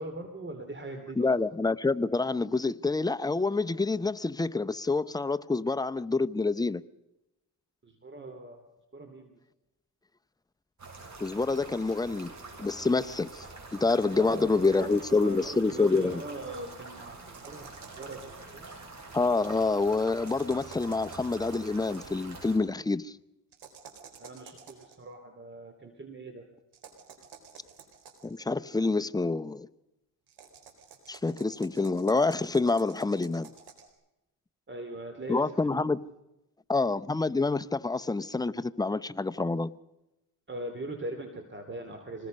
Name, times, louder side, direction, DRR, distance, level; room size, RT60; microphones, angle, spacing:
voice 1, 0.0-1.3 7.8-8.7 8.9-9.4 14.1-18.7 24.2-26.4 34.7-35.8 40.5-42.3, right 2 dB, 30° right, 3.0 m, -41 dB
voice 2, 1.2-6.8 11.2-12.3 12.6-16.2 19.1-23.2 28.2-29.7 31.1-33.5 35.3-36.0 36.7-39.7, left 3 dB, 10° left, 0.7 m, -27 dB
sound 1, 10.8-22.6, right 3 dB, 45° right, 7.7 m, -46 dB
sound 2, 17.3-18.4 20.1-21.8 23.5-25.0 26.7-28.4 30.3-33.9, right 6 dB, 80° right, 4.3 m, -51 dB
25.5 x 20.0 x 5.3 m
cardioid pair, 80°, 39 cm